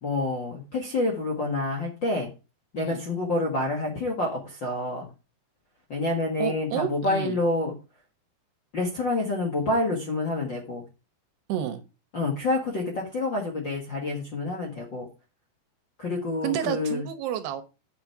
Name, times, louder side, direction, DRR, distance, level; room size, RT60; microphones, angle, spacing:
voice 1, 0.0-2.3 2.7-5.1 5.9-7.7 8.7-10.8 12.1-15.1 16.0-17.0, left 2 dB, 55° left, -2 dB, 1.3 m, -28 dB
voice 2, 6.4-7.4 11.5-11.8 16.4-17.6, right 10 dB, 75° right, 9 dB, 2.9 m, -30 dB
8.2 x 7.8 x 4.7 m, 0.30 s
omnidirectional pair, 5.0 m